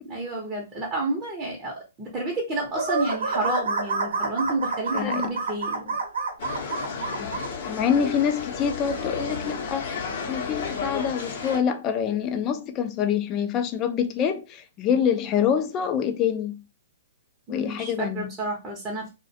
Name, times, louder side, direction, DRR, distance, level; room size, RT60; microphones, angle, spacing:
voice 1, 0.0-6.0 17.5-19.1, right 2 dB, 20° right, 0.7 m, -30 dB
sound 1, 2.7-7.5, right 4 dB, 75° right, 0.7 m, -28 dB
voice 2, 4.9-5.3 7.2-9.9 10.3-16.6 17.5-18.3, left 8 dB, 30° left, 0.4 m, -26 dB
sound 2, 6.4-11.6, left 5 dB, 50° left, 0.7 m, -32 dB
2.3 x 2.1 x 2.6 m
hypercardioid pair, 135°, 0 cm